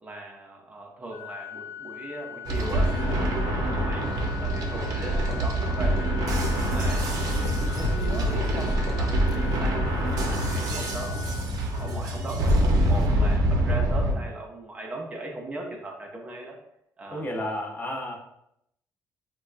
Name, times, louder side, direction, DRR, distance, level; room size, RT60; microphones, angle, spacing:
voice 1, 0.0-4.1 4.4-5.9 6.5-7.2 7.5-9.9 10.2-11.2 11.8-12.6 12.8-16.6 17.0-17.3, right 2 dB, 20° right, 0 dB, 0.5 m, -38 dB
Organ, 1.1-12.2, left 10 dB, 55° left, 0.9 m, -41 dB
sound 1, 2.4-14.1, right 1 dB, 70° right, 0.6 m, -25 dB
sound 2, 6.8-13.3, left 4 dB, 75° left, 0.3 m, -40 dB
voice 2, 17.1-18.2, left 1 dB, 25° left, -1 dB, 0.6 m, -31 dB
4.1 x 2.2 x 2.4 m, 0.78 s
cardioid pair, 125°, 7 cm